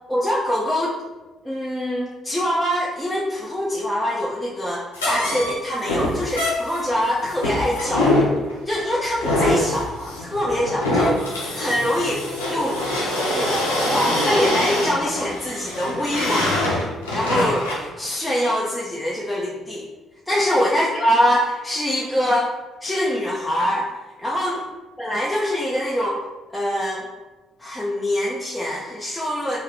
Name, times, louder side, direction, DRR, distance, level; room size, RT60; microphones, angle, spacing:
voice 1, 0.1-1.0 1.4-8.1 8.7-12.8 13.3-16.5 17.1-17.7 18.0-19.9 20.3-22.5 22.8-23.9 24.2-24.6 25.0-26.2 26.5-27.0 27.6-29.6, equal, 10° left, -5 dB, 0.8 m, -24 dB
sound 1, 4.9-17.9, left 1 dB, 90° left, 0.9 m, -24 dB
3.9 x 2.2 x 4.1 m, 1.2 s
hypercardioid pair, 45°, 0 cm